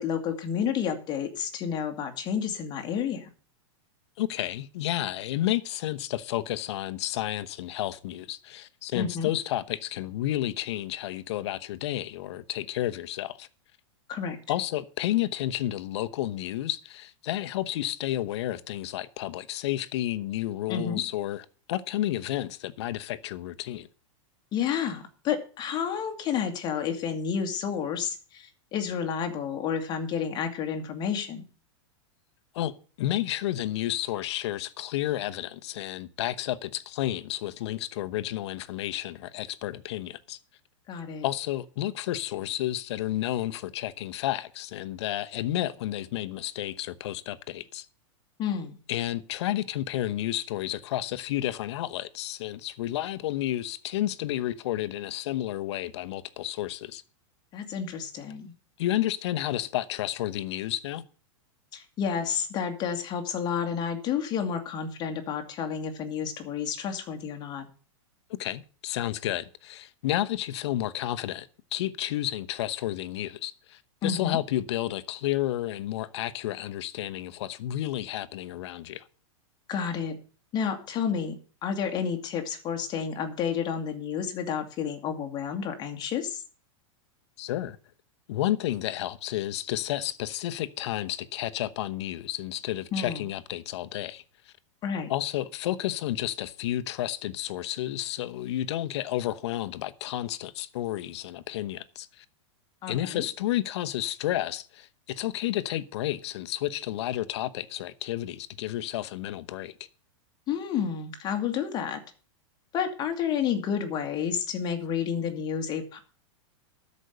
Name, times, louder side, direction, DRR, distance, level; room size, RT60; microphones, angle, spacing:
voice 1, 0.0-3.3 8.9-9.3 14.1-14.4 20.7-21.0 24.5-31.4 40.9-41.2 48.4-48.8 57.5-58.5 61.7-67.7 74.0-74.4 79.7-80.2 80.5-81.4 81.6-86.4 92.9-93.2 94.8-95.1 102.8-103.2 110.5-112.0 112.7-116.0, left 7 dB, 25° left, 2.1 m, -30 dB
voice 2, 4.2-13.5 14.5-23.9 32.5-32.7 33.0-40.4 41.2-47.9 48.9-57.0 58.8-61.0 68.3-79.1 87.4-87.8 88.3-94.5 95.1-102.2 102.9-109.7, left 13 dB, 60° left, 1.0 m, -31 dB
13.0 x 5.4 x 7.9 m
supercardioid pair, 150°, 16 cm